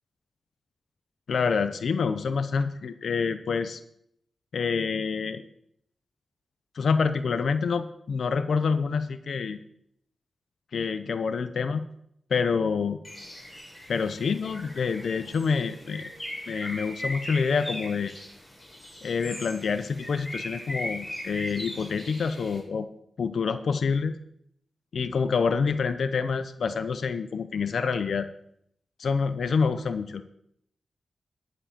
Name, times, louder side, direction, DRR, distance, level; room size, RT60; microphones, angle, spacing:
voice 1, 1.3-3.8 4.5-5.4 6.7-9.6 10.7-11.9 12.3-13.0 13.9-16.1 16.5-18.1 19.0-22.9 23.2-24.1 24.9-28.3 29.0-30.2, left 5 dB, 75° left, 11 dB, 0.7 m, -27 dB
Bird, 13.0-22.6, equal, 15° left, 5.3 m, -39 dB
11.0 x 7.5 x 7.4 m, 0.72 s
wide cardioid pair, 85°, 0 cm